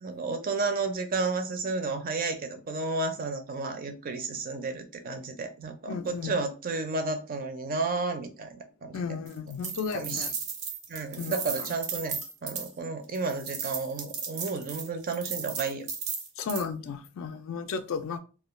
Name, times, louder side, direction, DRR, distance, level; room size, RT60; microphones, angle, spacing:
voice 1, 0.0-9.0 9.9-10.3 10.9-15.9, right 3 dB, 40° right, 0.4 m, -32 dB
voice 2, 5.9-6.3 8.9-10.3 11.1-11.7 16.4-18.2, left 5 dB, 65° left, 0.3 m, -34 dB
sound 1, 9.3-12.7 13.1-16.6, right 6 dB, 85° right, 0.6 m, -36 dB
2.2 x 2.2 x 3.0 m
head